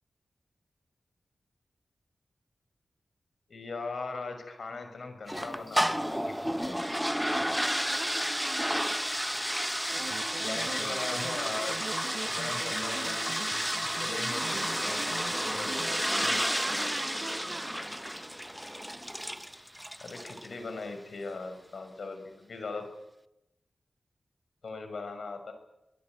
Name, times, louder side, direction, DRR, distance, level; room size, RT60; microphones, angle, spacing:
voice 1, 3.5-6.9 10.4-11.8 12.2-13.4 13.9-16.0 20.0-22.9 24.6-25.5, left 3 dB, 65° left, 7 dB, 6.2 m, -40 dB
sound 1, 5.3-20.5, equal, ahead, 0.8 m, -31 dB
voice 2, 7.6-9.0 15.2-15.7 16.5-17.8, right 3 dB, 45° right, 7 dB, 2.0 m, -43 dB
sound 2, 9.9-16.4, right 5 dB, 80° right, 1.3 m, -42 dB
24.5 x 20.0 x 9.3 m, 0.90 s
wide cardioid pair, 135°, 0 cm